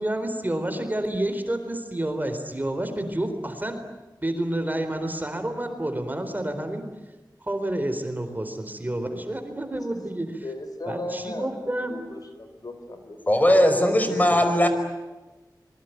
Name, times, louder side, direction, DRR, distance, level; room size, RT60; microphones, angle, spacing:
voice 1, 0.0-3.8 4.2-6.9 7.4-10.4 10.9-11.9 14.1-14.4, right 1 dB, 25° right, 7 dB, 3.9 m, -29 dB
voice 2, 10.4-11.5 11.8-13.5 14.4-14.7, left 1 dB, 60° left, 7 dB, 4.6 m, -36 dB
voice 3, 13.3-14.7, equal, 20° left, 7 dB, 5.2 m, -19 dB
26.5 x 22.0 x 9.2 m, 1.1 s
wide cardioid pair, 75°, 7 cm